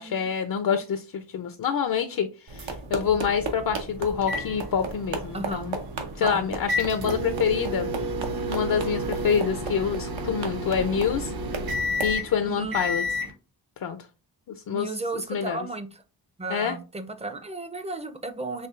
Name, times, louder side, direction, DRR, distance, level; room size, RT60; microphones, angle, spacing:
voice 1, 0.0-5.8 6.2-7.9 8.5-11.3 12.0-13.0 13.8-14.0 14.5-14.9 15.3-15.6 16.5-16.8, left 7 dB, 55° left, 0.5 m, -26 dB
sound 1, 2.5-12.2, right 4 dB, 85° right, 0.9 m, -36 dB
sound 2, 4.2-13.3, equal, 55° right, 0.7 m, -31 dB
voice 2, 5.3-5.7 6.2-6.5 12.4-12.8 14.7-16.0 16.4-18.7, right 3 dB, 15° right, 0.5 m, -34 dB
4.4 x 3.0 x 2.4 m
cardioid pair, 70°, 44 cm